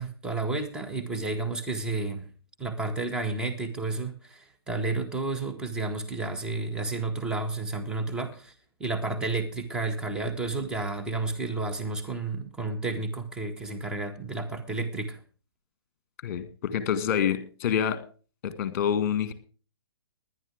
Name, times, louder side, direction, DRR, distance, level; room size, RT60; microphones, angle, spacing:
voice 1, 0.0-2.3 2.6-8.5 8.8-15.2, right 3 dB, 5° right, 4 dB, 1.7 m, -31 dB
voice 2, 16.2-18.0 18.4-19.3, left 8 dB, 35° left, 12 dB, 1.9 m, -27 dB
19.5 x 11.0 x 3.5 m, 0.37 s
figure-of-eight pair, 125°, 13 cm